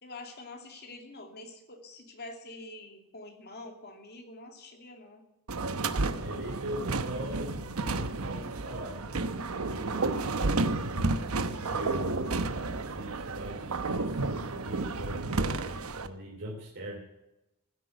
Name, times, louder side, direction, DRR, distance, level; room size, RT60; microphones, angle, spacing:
voice 1, 0.0-5.2, left 2 dB, 50° left, 3 dB, 2.6 m, -46 dB
sound 1, 5.5-16.1, right 3 dB, 85° right, 0.9 m, -31 dB
voice 2, 6.2-12.2 12.7-17.0, right 1 dB, 60° right, -3 dB, 3.0 m, -42 dB
15.5 x 8.4 x 7.9 m, 0.93 s
head